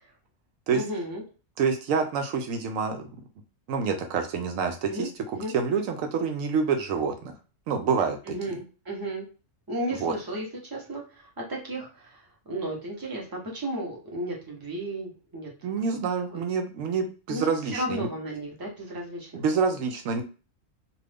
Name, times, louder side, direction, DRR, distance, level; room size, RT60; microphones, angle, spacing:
voice 1, 0.7-1.2 4.9-5.5 8.3-9.2 9.7-15.5 16.3-16.4 17.3-19.4, right 1 dB, 20° right, -2 dB, 0.9 m, -34 dB
voice 2, 1.6-3.0 3.7-5.1 5.5-7.3 7.7-8.3 10.0-10.1 15.6-18.1 19.3-20.2, right 5 dB, 80° right, 5 dB, 1.0 m, -27 dB
2.5 x 2.5 x 3.4 m, 0.34 s
omnidirectional pair, 1.3 m